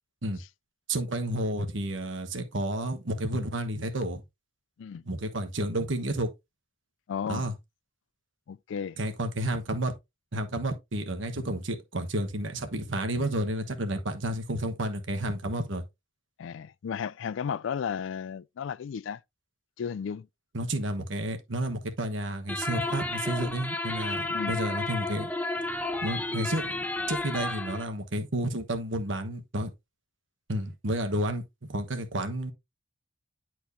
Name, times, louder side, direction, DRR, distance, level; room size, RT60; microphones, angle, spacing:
voice 1, 0.9-4.2 5.0-6.3 7.3-7.5 9.0-9.9 10.3-15.8 20.5-25.3 26.0-26.8 27.1-29.7 30.5-31.4 31.7-32.5, right 1 dB, 70° right, 1.2 m, -31 dB
voice 2, 7.1-7.5 8.5-9.0 16.4-19.2 19.8-20.3 24.3-24.5, left 7 dB, 70° left, 0.3 m, -34 dB
sound 1, 22.5-27.8, left 2 dB, 10° left, 0.5 m, -32 dB
10.0 x 4.5 x 2.7 m
head